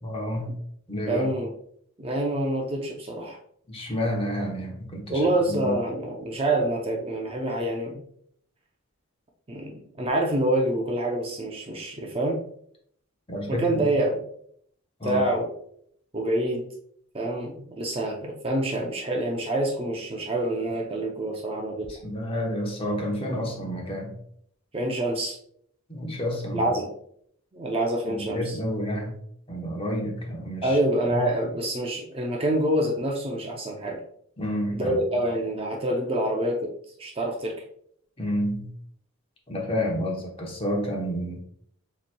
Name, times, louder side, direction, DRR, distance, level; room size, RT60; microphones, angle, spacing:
voice 1, 0.0-0.5 0.9-1.3 3.7-5.2 5.5-5.7 13.3-13.8 15.0-15.2 21.9-24.1 25.9-26.7 28.3-29.2 29.5-30.8 31.1-31.2 34.4-35.0 38.2-38.7 39.5-41.4, equal, 25° left, 0 dB, 1.0 m, -29 dB
voice 2, 1.1-1.5 2.0-3.4 5.1-8.0 9.5-12.4 13.5-14.2 15.0-15.5 16.1-16.7 17.1-21.9 24.7-25.4 26.5-26.9 27.5-28.6 30.6-34.0 34.7-36.7 37.0-37.6, right 1 dB, 25° right, 0 dB, 0.6 m, -26 dB
6.9 x 3.0 x 2.2 m, 0.66 s
head